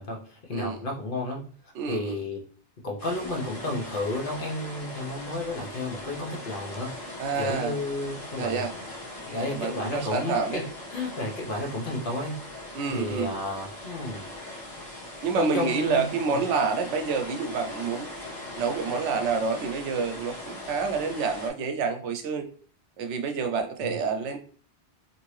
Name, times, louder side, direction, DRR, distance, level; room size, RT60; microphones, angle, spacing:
voice 1, 0.0-1.4 1.9-2.4 2.8-6.9 7.4-8.6 9.2-10.6 10.9-12.4 12.9-14.2 15.4-16.1 23.8-24.0, left 2 dB, 55° left, 0 dB, 0.9 m, -32 dB
voice 2, 1.7-2.2 7.2-7.8 8.4-8.7 9.3-10.6 12.7-13.3 14.9-18.1 18.6-22.5 23.0-24.4, right 5 dB, 85° right, 5 dB, 0.9 m, -28 dB
sound 1, 3.0-21.5, left 1 dB, 20° left, 1.1 m, -40 dB
2.8 x 2.6 x 3.1 m, 0.43 s
omnidirectional pair, 1.2 m